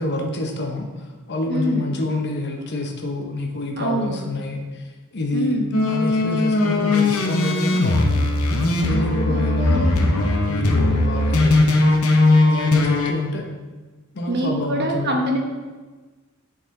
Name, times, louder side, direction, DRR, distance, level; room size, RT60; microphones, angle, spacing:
voice 1, 0.0-4.8 5.1-5.6 5.9-8.3 8.7-10.0 10.4-11.7 12.5-13.5 14.1-15.2, left 2 dB, 50° left, 2 dB, 0.8 m, -27 dB
voice 2, 1.5-1.9 3.8-4.2 5.3-5.7 9.3-10.0 14.3-15.4, equal, 50° right, 1 dB, 1.0 m, -25 dB
sound 1, 5.7-13.1, left 2 dB, 80° left, 0.8 m, -19 dB
8.2 x 4.0 x 3.7 m, 1.3 s
head